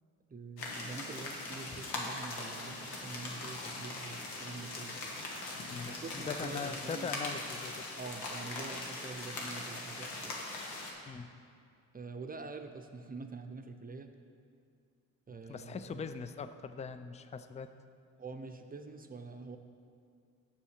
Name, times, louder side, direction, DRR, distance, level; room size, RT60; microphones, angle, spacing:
voice 1, 0.3-5.0 5.9-7.1 8.0-10.3 11.9-14.1 15.3-16.1 18.2-19.6, right 4 dB, 25° right, 6 dB, 0.7 m, -45 dB
sound 1, 0.6-10.9, left 2 dB, 90° left, 1.3 m, -41 dB
voice 2, 5.7-7.9 11.1-11.3 15.5-17.7, left 5 dB, 20° left, 11 dB, 0.4 m, -41 dB
7.1 x 5.6 x 6.4 m, 2.3 s
supercardioid pair, 65°, 37 cm